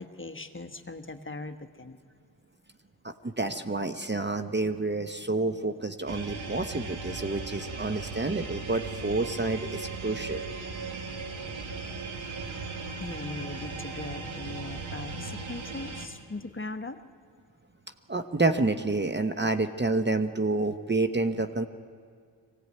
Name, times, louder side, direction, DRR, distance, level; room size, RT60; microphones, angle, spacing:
voice 1, 0.0-2.0 13.0-17.0, left 3 dB, 25° left, 8 dB, 1.2 m, -39 dB
voice 2, 3.0-10.4 18.1-21.7, right 2 dB, 20° right, 8 dB, 1.0 m, -29 dB
sound 1, 6.1-16.1, right 3 dB, 75° right, 2.2 m, -37 dB
22.0 x 17.0 x 9.5 m, 2.1 s
cardioid pair, 55°, 47 cm